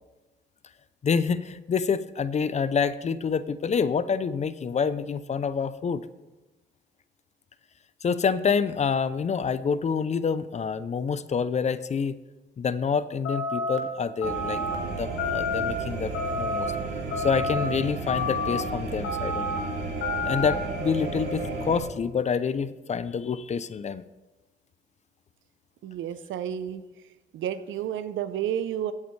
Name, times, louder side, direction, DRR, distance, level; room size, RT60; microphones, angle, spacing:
voice 1, 1.0-6.1 8.0-12.2 12.6-14.6 15.0-16.7 17.2-19.6 20.2-24.0, left 6 dB, 35° left, 15 dB, 0.5 m, -27 dB
sound 1, 13.2-13.8 14.2-14.7 15.2-15.7 16.1-16.7 17.1-17.6 18.1-18.6 19.0-19.6 20.0-20.5, left 3 dB, 85° left, 1.6 m, -29 dB
sound 2, 14.2-21.8, right 3 dB, 55° right, 2.6 m, -33 dB
voice 2, 25.8-26.8 27.3-28.9, right 10 dB, 75° right, 13 dB, 0.7 m, -31 dB
16.0 x 8.3 x 3.2 m, 1.2 s
cardioid pair, 90°, 20 cm